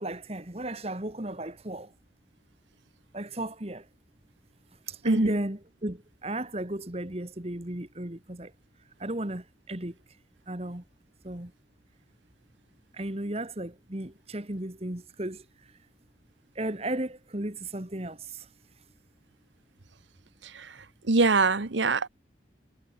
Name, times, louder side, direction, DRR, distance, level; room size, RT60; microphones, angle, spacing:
voice 1, 0.0-1.9 3.1-3.9 4.9-8.5 9.0-10.0 10.5-10.8 11.2-11.5 12.9-15.7 16.6-18.5, right 1 dB, 35° right, 1.9 m, -34 dB
voice 2, 21.1-22.1, right 3 dB, 85° right, 1.3 m, -23 dB
head